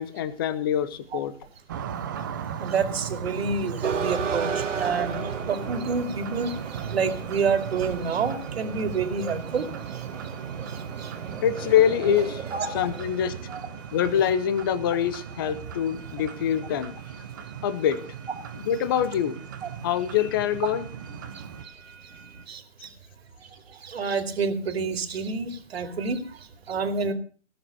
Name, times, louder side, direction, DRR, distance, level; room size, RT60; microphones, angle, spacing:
voice 1, 0.0-1.3 11.4-12.4 12.7-13.4 13.9-17.0 17.6-18.1 18.6-19.4 19.8-20.8, left 9 dB, 20° left, 13 dB, 0.8 m, -24 dB
sound 1, 1.7-21.6, right 8 dB, 15° right, 0.7 m, -37 dB
voice 2, 2.6-5.2 5.5-9.7 10.7-11.1 12.5-12.7 13.5-13.6 19.6-19.7 22.5-22.6 23.7-26.2 26.7-27.1, right 5 dB, 50° right, 9 dB, 2.8 m, -28 dB
sound 2, 3.8-22.4, right 6 dB, 70° right, 2.0 m, -38 dB
19.0 x 7.4 x 7.9 m, 0.41 s
hypercardioid pair, 155°, 39 cm